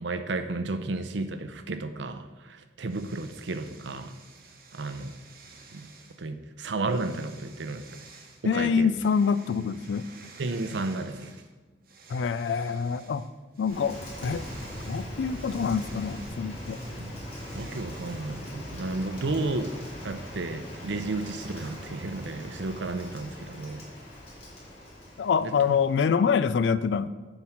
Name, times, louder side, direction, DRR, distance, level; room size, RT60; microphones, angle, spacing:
voice 1, 0.0-4.1 4.7-5.1 5.7-5.9 6.2-8.0 8.4-8.9 10.4-11.4 17.0-17.2 17.5-19.7 20.0-23.9 25.4-25.8, right 2 dB, 80° right, 10 dB, 0.6 m, -33 dB
sound 1, 2.9-6.2 6.8-8.4 8.9-11.5 11.8-21.9, right 4 dB, 50° right, 0.9 m, -53 dB
voice 2, 8.4-10.1 12.1-13.2 13.6-14.5 14.9-16.8 25.2-27.1, left 6 dB, 80° left, 15 dB, 0.3 m, -26 dB
Rain, 13.7-26.1, equal, 35° left, 2.2 m, -40 dB
7.3 x 4.6 x 5.8 m, 1.3 s
head